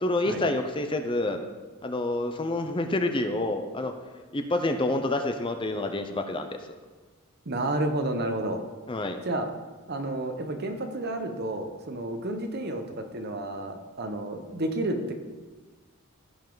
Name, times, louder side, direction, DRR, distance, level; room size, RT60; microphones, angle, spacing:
voice 1, 0.0-1.4 1.8-3.9 4.3-6.6 8.9-9.2, left 2 dB, 25° left, 6 dB, 0.6 m, -28 dB
voice 2, 7.5-8.6 9.2-9.5 9.9-15.1, right 1 dB, 50° right, 6 dB, 1.0 m, -31 dB
15.0 x 5.4 x 3.9 m, 1.3 s
head